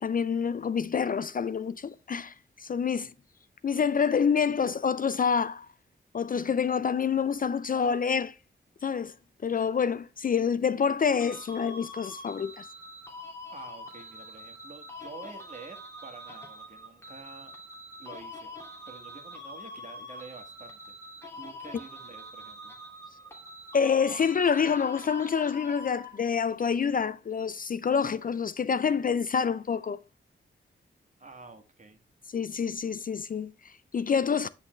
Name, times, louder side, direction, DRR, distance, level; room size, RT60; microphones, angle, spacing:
voice 1, 0.0-2.3 2.6-3.1 3.6-5.7 6.1-8.4 8.8-9.1 9.4-12.7 23.7-30.0 32.3-34.5, left 6 dB, 45° left, 0.4 m, -27 dB
sound 1, 11.2-26.4, left 1 dB, 15° left, 2.6 m, -45 dB
voice 2, 13.5-17.6 18.0-18.5 18.9-21.1 21.4-22.8 31.2-32.0, right 3 dB, 40° right, 1.8 m, -48 dB
9.9 x 4.1 x 3.2 m
cardioid pair, 75°, 20 cm